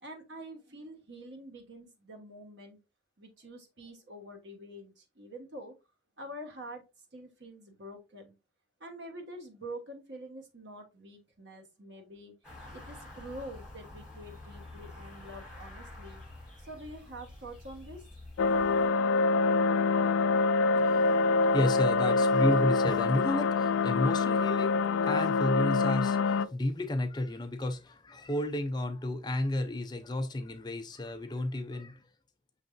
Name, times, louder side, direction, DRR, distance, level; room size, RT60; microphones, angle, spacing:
voice 1, 0.0-2.8 3.2-5.7 6.2-6.8 7.1-8.3 8.8-16.2 16.7-18.3, right 1 dB, 65° right, 1.1 m, -46 dB
sound 1, 12.4-18.9, left 2 dB, 5° right, 1.8 m, -48 dB
sound 2, 18.4-26.4, left 4 dB, 90° left, 0.3 m, -25 dB
voice 2, 20.8-32.0, left 1 dB, 20° left, 0.4 m, -32 dB
6.1 x 3.3 x 2.5 m
head